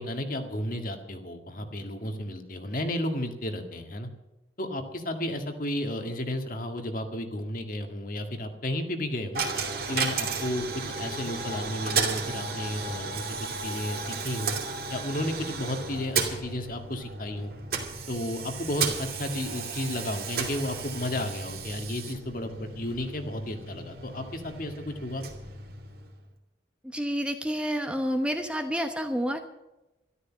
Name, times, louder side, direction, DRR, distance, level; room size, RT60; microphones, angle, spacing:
voice 1, 0.0-4.1 4.6-9.4 9.9-14.6 14.9-17.5 18.1-25.2, left 1 dB, 45° left, 5 dB, 2.0 m, -33 dB
Coin (dropping), 9.3-26.3, right 4 dB, 50° right, 2.6 m, -34 dB
voice 2, 26.8-29.4, equal, 5° right, 5 dB, 1.0 m, -29 dB
13.0 x 13.0 x 7.4 m, 0.98 s
head